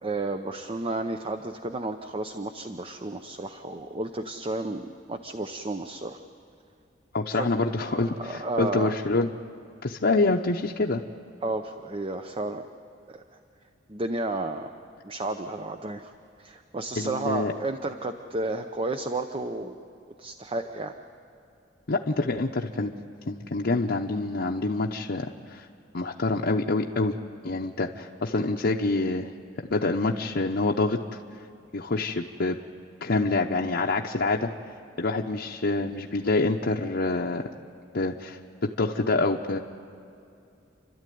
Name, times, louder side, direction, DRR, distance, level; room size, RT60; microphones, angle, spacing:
voice 1, 0.0-6.2 7.3-7.5 7.9-8.9 11.4-12.7 13.1-13.2 13.9-14.7 15.0-16.1 16.4-19.8 20.2-20.9, right 2 dB, 30° right, 7 dB, 0.7 m, -32 dB
voice 2, 7.1-9.3 9.8-11.0 17.0-17.5 21.9-22.9 23.3-25.7 25.9-27.2 27.4-29.3 29.6-31.0 31.7-32.6 33.0-34.5 35.0-37.5 37.9-39.6, left 3 dB, 60° left, 0 dB, 0.9 m, -26 dB
30.0 x 13.0 x 9.3 m, 2.6 s
head